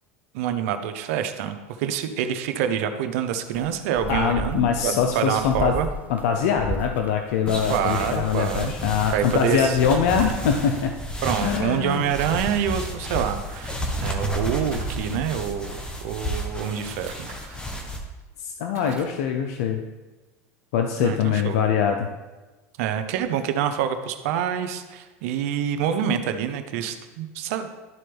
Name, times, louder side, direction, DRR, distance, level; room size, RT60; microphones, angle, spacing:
voice 1, 0.3-5.9 7.7-8.7 9.1-9.8 11.2-17.3 21.0-21.6 22.8-27.7, right 9 dB, 70° right, 8 dB, 0.8 m, -26 dB
sound 1, 3.5-12.4, right 1 dB, 20° right, 0.6 m, -37 dB
voice 2, 4.1-5.7 6.1-10.9 11.4-12.1 18.4-19.8 20.7-22.1, left 7 dB, 75° left, 4 dB, 0.7 m, -23 dB
sound 2, 7.5-18.0, equal, 10° left, 1.2 m, -32 dB
sound 3, 10.2-10.7 12.1-12.7 14.5-15.0 17.0-17.6 18.2-18.3 18.7-19.2, right 5 dB, 90° right, 1.6 m, -46 dB
12.5 x 4.3 x 3.5 m, 1.2 s
supercardioid pair, 110°, 8 cm